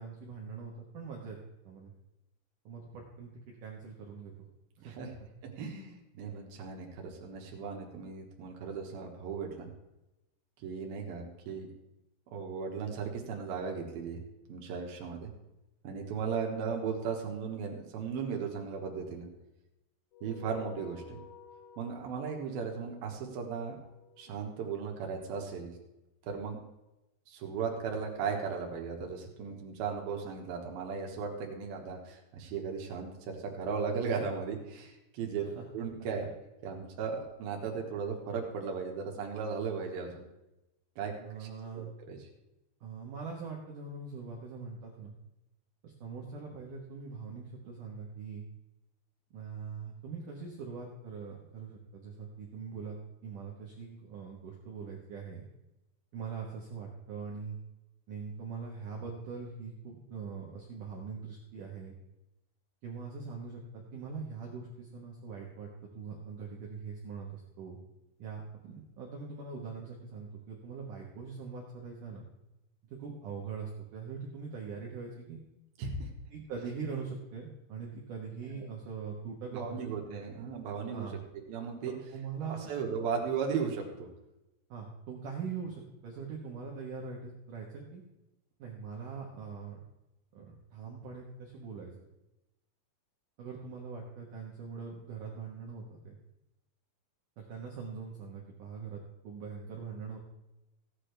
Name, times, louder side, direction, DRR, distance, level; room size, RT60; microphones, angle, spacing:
voice 1, 0.0-1.4 1.6-1.9 2.7-4.3 4.8-4.9 35.4-35.6 41.2-41.9 42.8-45.1 45.8-48.4 49.3-53.0 53.2-55.5 56.1-57.6 58.1-61.9 62.8-65.7 65.9-67.8 68.2-72.3 72.9-75.4 76.3-80.2 80.9-81.2 81.8-82.7 84.7-88.0 88.6-89.8 90.3-91.9 93.4-96.2 97.4-100.2, right 5 dB, 90° right, -1 dB, 1.8 m, -42 dB
voice 2, 5.6-9.7 10.6-11.7 12.3-14.2 14.5-15.3 15.8-19.3 20.2-21.2 21.8-23.8 24.2-25.7 26.2-26.6 27.3-36.3 36.6-40.2 41.0-41.1 41.4-41.5 41.7-42.2 75.8-76.1 78.6-78.7 79.5-81.2 81.5-81.9 82.4-84.1, right 5 dB, 70° right, 1 dB, 2.4 m, -36 dB
sound 1, 20.1-24.9, left 7 dB, 70° left, 2.4 m, -53 dB
15.5 x 9.9 x 3.3 m, 0.95 s
omnidirectional pair, 5.8 m